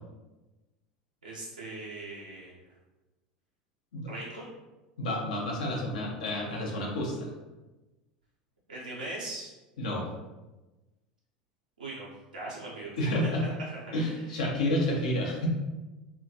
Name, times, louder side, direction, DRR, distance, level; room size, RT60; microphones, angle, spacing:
voice 1, 1.2-2.5 4.1-4.5 8.7-9.5 11.8-12.1 12.3-13.3 13.9-14.2, right 2 dB, 85° right, -6 dB, 0.5 m, -40 dB
voice 2, 5.0-7.3 9.8-10.1 13.0-13.6 13.9-15.5, left 1 dB, 70° left, -2 dB, 0.6 m, -30 dB
2.2 x 2.2 x 2.6 m, 1.1 s
figure-of-eight pair, 75°, 4 cm